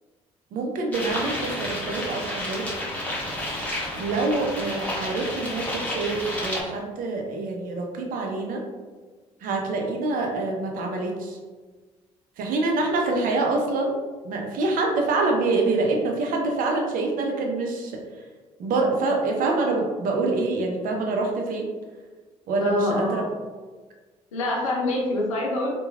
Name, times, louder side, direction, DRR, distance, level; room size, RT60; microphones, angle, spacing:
voice 1, 0.5-2.7 3.9-8.6 9.4-11.4 12.4-14.0 14.2-18.0 18.6-21.7 22.5-23.2, right 3 dB, 55° right, 1 dB, 0.6 m, -26 dB
sound 1, 0.9-6.6, left 1 dB, 10° left, 1.0 m, -31 dB
voice 2, 22.6-23.3 24.3-25.7, left 2 dB, 85° left, -2 dB, 0.6 m, -25 dB
3.0 x 2.2 x 2.3 m, 1.4 s
hypercardioid pair, 50°, 17 cm